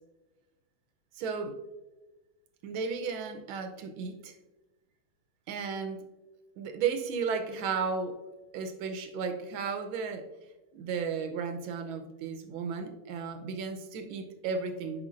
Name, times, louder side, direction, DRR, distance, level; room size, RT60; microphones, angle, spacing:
voice 1, 1.2-1.6 2.6-4.4 5.5-6.1 6.6-8.2 8.5-10.3 10.7-15.1, right 5 dB, 85° right, 7 dB, 1.5 m, -34 dB
9.5 x 5.1 x 2.5 m, 1.1 s
omnidirectional pair, 2.2 m